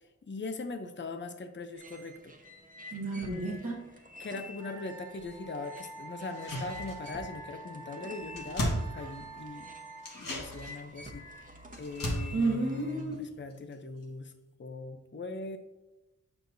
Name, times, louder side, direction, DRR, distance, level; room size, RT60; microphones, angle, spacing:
voice 1, 0.3-2.3 4.2-9.7 10.1-11.2 11.8-14.3 14.6-15.6, left 3 dB, 35° left, 7 dB, 0.6 m, -40 dB
sound 1, 1.7-13.0, left 1 dB, 25° right, 1.0 m, -50 dB
voice 2, 2.9-3.8 12.3-13.1, right 2 dB, 50° right, -2 dB, 1.5 m, -31 dB
Wind instrument woodwind instrument, 4.6-10.1, right 3 dB, 60° left, 2.0 m, -47 dB
sound 2, 6.2-7.4 7.7-7.8 8.0-9.6 10.0-13.7 14.0-14.1, equal, 85° left, 1.7 m, -37 dB
8.8 x 6.1 x 2.7 m, 1.0 s
wide cardioid pair, 70°, 32 cm